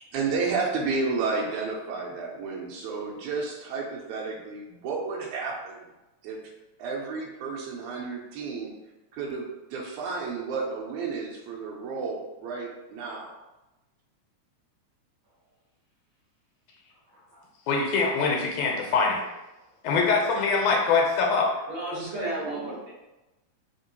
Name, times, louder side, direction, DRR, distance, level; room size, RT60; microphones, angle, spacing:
voice 1, 0.1-5.8 6.2-6.5 6.8-8.8 9.1-13.3, right 4 dB, 85° right, 0 dB, 2.0 m, -31 dB
voice 2, 17.1-17.4 21.5-22.9, right 2 dB, 55° right, -7 dB, 1.6 m, -34 dB
voice 3, 17.7-19.2 19.8-21.5, left 4 dB, 85° left, 0 dB, 2.2 m, -23 dB
4.3 x 3.6 x 2.8 m, 1.0 s
omnidirectional pair, 3.4 m